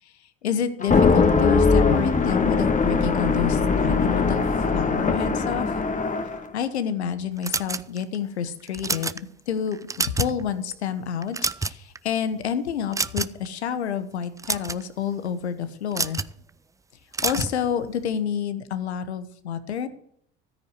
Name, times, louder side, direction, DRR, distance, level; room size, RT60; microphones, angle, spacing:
voice 1, 0.4-4.4 4.7-5.7 6.5-9.2 9.5-9.8 10.0-16.2 17.2-19.9, left 8 dB, 90° left, 11 dB, 1.2 m, -28 dB
sound 1, 0.8-6.4, left 4 dB, 25° left, 1.6 m, -21 dB
sound 2, 7.4-8.2 8.7-9.2 9.7-10.4 10.7-10.9 11.2-12.0 12.9-13.5 14.2-14.8 15.9-16.3 17.1-17.6, right 4 dB, 10° right, 0.5 m, -27 dB
13.5 x 9.8 x 6.6 m, 0.69 s
hypercardioid pair, 75°, 32 cm